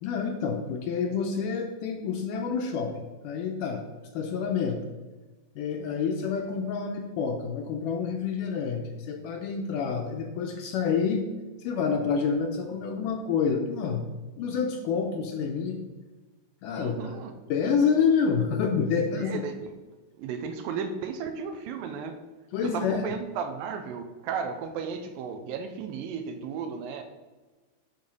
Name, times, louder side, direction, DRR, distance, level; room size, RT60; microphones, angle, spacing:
voice 1, 0.0-3.8 4.1-4.8 5.6-11.3 11.6-14.1 14.4-15.8 16.6-17.2 17.5-19.4 22.5-23.0, left 6 dB, 80° left, 3 dB, 2.0 m, -28 dB
voice 2, 16.7-17.3 19.1-19.6 20.2-22.2 22.6-27.0, right 6 dB, 80° right, 7 dB, 2.4 m, -34 dB
10.5 x 4.1 x 5.2 m, 1.2 s
omnidirectional pair, 4.2 m